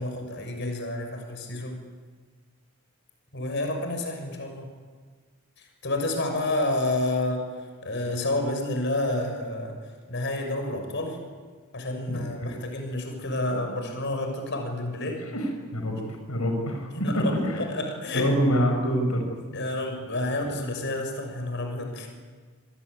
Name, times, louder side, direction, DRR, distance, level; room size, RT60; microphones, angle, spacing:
voice 1, 0.0-1.8 3.3-4.7 5.6-7.5 7.8-9.8 10.1-11.2 11.7-15.2 16.0-16.1 16.9-18.3 19.5-22.1, left 2 dB, 55° left, 4 dB, 6.6 m, -29 dB
voice 2, 12.1-12.6 15.3-16.0 16.3-17.6 18.1-19.4, equal, 85° left, 3 dB, 5.5 m, -26 dB
28.0 x 21.5 x 9.8 m, 1.5 s
head